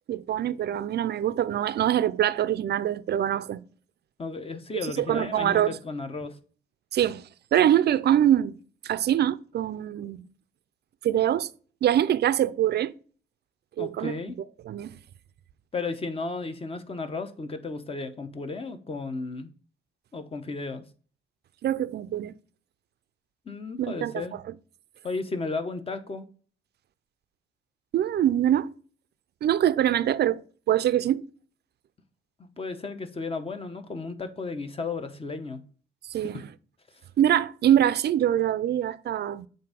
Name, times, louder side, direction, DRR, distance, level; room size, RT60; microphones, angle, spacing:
voice 1, 0.1-3.6 5.0-5.8 6.9-8.6 8.8-10.2 11.0-11.5 11.8-12.9 13.8-14.9 21.6-22.3 23.8-24.4 27.9-28.7 29.4-31.2 36.0-36.4 37.2-39.5, right 11 dB, 55° right, 0.5 m, -24 dB
voice 2, 4.2-6.4 13.8-14.4 15.7-19.5 20.1-20.8 23.5-24.4 25.0-26.2 32.4-35.6, left 3 dB, 30° left, 1.0 m, -34 dB
7.6 x 2.7 x 5.0 m
cardioid pair, 90°, 20 cm